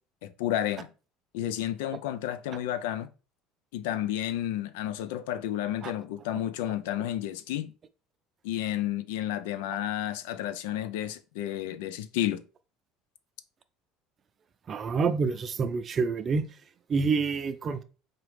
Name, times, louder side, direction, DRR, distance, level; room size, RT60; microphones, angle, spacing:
voice 1, 0.2-0.9 1.3-3.1 3.7-7.7 8.4-12.4, left 12 dB, 80° left, 0.4 m, -31 dB
voice 2, 14.7-16.4 16.9-17.8, right 5 dB, 40° right, 0.5 m, -27 dB
3.9 x 2.9 x 3.2 m
supercardioid pair, 85°, 0 cm